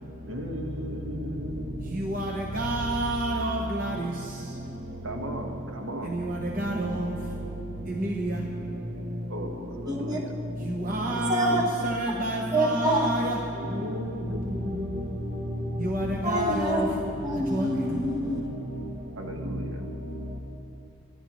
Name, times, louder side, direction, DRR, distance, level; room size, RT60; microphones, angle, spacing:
voice 1, 0.3-2.3 5.0-6.2 9.3-10.3 13.6-15.2 19.2-19.8, equal, 85° right, 2 dB, 1.4 m, -36 dB
voice 2, 2.0-4.0 6.3-7.0 8.0-8.4 10.9-13.4 15.8-16.9 17.5-17.7, right 1 dB, 45° right, 0 dB, 0.9 m, -28 dB
voice 3, 9.9-10.2 11.3-11.6 12.5-13.1 16.2-16.9 17.2-18.4, right 1 dB, 20° right, 0 dB, 1.2 m, -26 dB
24.5 x 9.9 x 3.1 m, 2.6 s
head